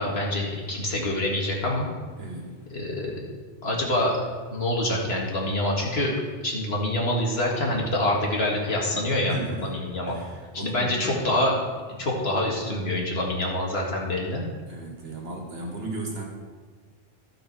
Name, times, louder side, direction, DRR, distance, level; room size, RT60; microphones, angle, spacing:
voice 1, 0.0-1.9 2.7-3.2 3.6-4.2 4.5-6.1 6.4-9.3 9.6-10.2 10.5-11.6 12.0-14.4, left 1 dB, 80° left, -2 dB, 2.2 m, -26 dB
voice 2, 2.2-2.6 9.3-9.7 10.1-11.3 14.7-16.3, right 2 dB, 75° right, 0 dB, 1.9 m, -35 dB
15.5 x 5.2 x 4.7 m, 1.5 s
omnidirectional pair, 1.0 m